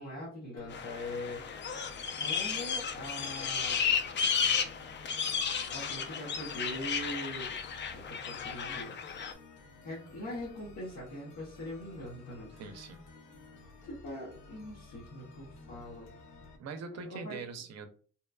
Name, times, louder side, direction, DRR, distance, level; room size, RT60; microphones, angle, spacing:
voice 1, 0.0-1.4 2.1-3.9 5.7-7.6 7.9-9.4 9.8-12.5 13.8-16.1 17.0-17.4, left 1 dB, 60° left, -7 dB, 1.0 m, -42 dB
sound 1, 0.6-16.6, left 3 dB, 85° left, 0.7 m, -54 dB
sound 2, 0.7-9.3, left 6 dB, 40° left, 0.4 m, -33 dB
voice 2, 12.5-13.0 16.6-17.9, right 4 dB, 60° right, 8 dB, 0.6 m, -42 dB
2.8 x 2.3 x 2.3 m, 0.42 s
cardioid pair, 90°, 30 cm